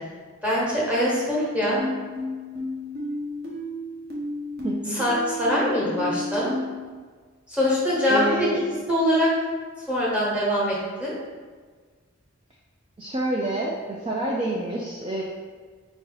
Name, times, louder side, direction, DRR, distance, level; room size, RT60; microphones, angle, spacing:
voice 1, 0.4-1.8 4.9-6.5 7.5-8.5 8.9-9.3 9.9-11.1, left 1 dB, 5° right, -7 dB, 1.1 m, -23 dB
sound 1, 1.8-6.8, left 1 dB, 45° right, 0.9 m, -32 dB
voice 2, 4.6-5.0 8.1-8.6 13.0-15.2, right 2 dB, 25° right, -3 dB, 0.3 m, -28 dB
4.6 x 2.7 x 4.0 m, 1.5 s
head